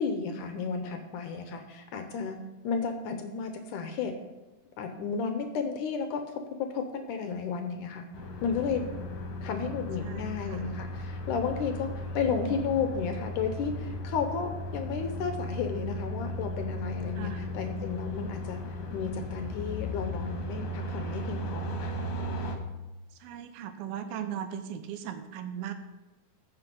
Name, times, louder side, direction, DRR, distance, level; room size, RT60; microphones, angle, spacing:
voice 1, 0.0-2.4 2.6-4.1 4.8-6.2 6.7-8.1 8.4-8.9 9.4-18.6 18.9-22.0, left 5 dB, 75° left, 7 dB, 2.0 m, -33 dB
sound 1, 8.1-22.5, left 1 dB, 55° left, 2.1 m, -36 dB
voice 2, 10.0-10.6 17.2-17.5 23.2-25.7, right 9 dB, 90° right, 9 dB, 2.7 m, -38 dB
14.5 x 5.9 x 5.2 m, 1.1 s
omnidirectional pair, 4.2 m